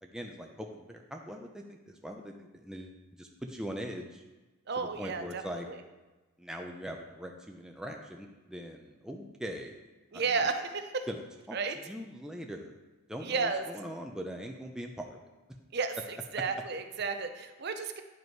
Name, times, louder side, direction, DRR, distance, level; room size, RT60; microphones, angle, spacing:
voice 1, 0.0-4.2 4.8-5.7 6.4-9.9 10.1-10.4 11.1-11.2 11.5-12.8 13.1-15.2, equal, 5° right, 2 dB, 0.5 m, -41 dB
voice 2, 4.7-5.4 10.1-11.1 11.5-11.8 13.2-13.6 15.7-16.0 16.3-18.0, right 4 dB, 50° right, 7 dB, 0.6 m, -32 dB
9.5 x 5.2 x 4.6 m, 1.2 s
head